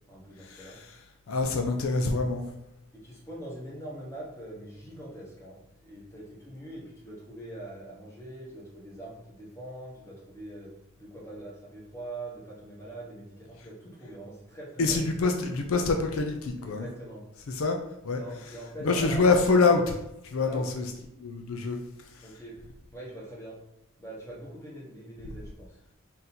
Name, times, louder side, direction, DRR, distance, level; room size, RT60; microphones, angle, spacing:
voice 1, 0.1-0.8 2.9-15.1 16.6-17.3 18.2-19.2 20.3-20.7 22.2-23.6 24.0-25.8, right 1 dB, 10° left, -5 dB, 1.1 m, -43 dB
voice 2, 1.3-2.5 14.8-16.9 17.5-17.8 18.0-18.2 18.8-20.0 20.2-20.8 21.2-21.8 22.1-22.2, left 3 dB, 70° left, 4 dB, 0.4 m, -25 dB
3.7 x 2.7 x 4.2 m, 0.88 s
head